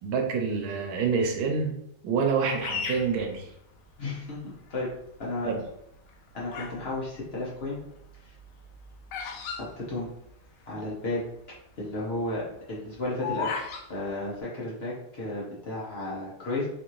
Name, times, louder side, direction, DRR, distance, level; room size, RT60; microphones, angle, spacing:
voice 1, 0.0-1.7 2.0-3.5 5.5-5.6, right 5 dB, 80° right, 2 dB, 1.4 m, -27 dB
Bird vocalization bird call bird song, 2.6-4.1 4.7-5.2 5.9-6.9 7.1-10.6 10.9-11.0 11.2-11.5 11.9-13.9, left 5 dB, 85° left, 1.4 m, -36 dB
voice 2, 4.0-4.9 5.2-5.5 6.3-7.8 8.2-8.3 9.6-10.1 10.7-11.2 11.8-13.6 13.9-16.7, left 2 dB, 65° left, -6 dB, 0.6 m, -33 dB
4.0 x 2.5 x 3.0 m, 0.79 s
omnidirectional pair, 2.3 m